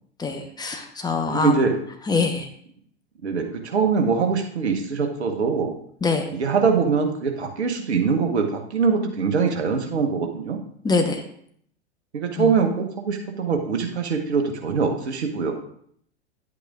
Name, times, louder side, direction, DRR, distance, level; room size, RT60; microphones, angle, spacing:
voice 1, 0.2-1.5 2.1-2.5 6.0-6.2 10.8-11.2, left 4 dB, 10° left, 4 dB, 1.0 m, -23 dB
voice 2, 1.3-1.8 3.2-5.7 6.3-10.6 12.1-15.5, right 5 dB, 70° right, 5 dB, 1.2 m, -23 dB
10.5 x 8.3 x 2.5 m, 0.65 s
figure-of-eight pair, 90°, 34 cm